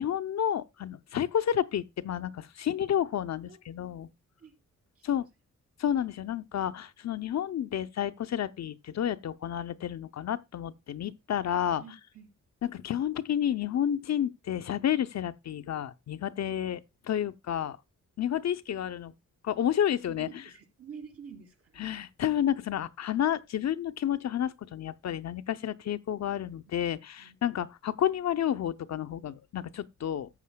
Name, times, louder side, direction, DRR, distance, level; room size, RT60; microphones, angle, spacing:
voice 1, 0.0-4.1 5.0-5.3 5.8-11.8 12.6-17.8 18.2-19.1 19.4-20.4 21.8-30.3, left 10 dB, 60° left, 0.6 m, -30 dB
voice 2, 11.8-12.3 20.1-22.0 26.4-26.5 27.2-27.4, right 6 dB, 50° right, 2.7 m, -48 dB
14.0 x 8.3 x 2.2 m
wide cardioid pair, 125°, 30 cm